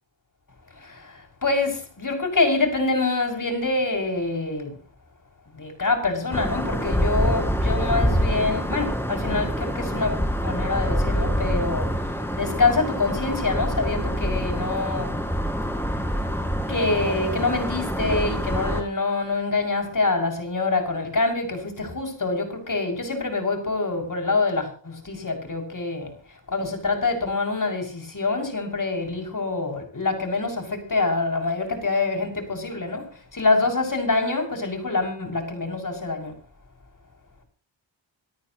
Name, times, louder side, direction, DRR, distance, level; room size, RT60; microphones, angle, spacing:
voice 1, 0.8-4.7 5.5-15.2 16.7-36.3, left 3 dB, 40° left, 6.3 m, -26 dB
sound 1, 6.3-18.8, equal, 5° left, 4.2 m, -26 dB
27.0 x 14.0 x 3.0 m
wide cardioid pair, 80°, 48 cm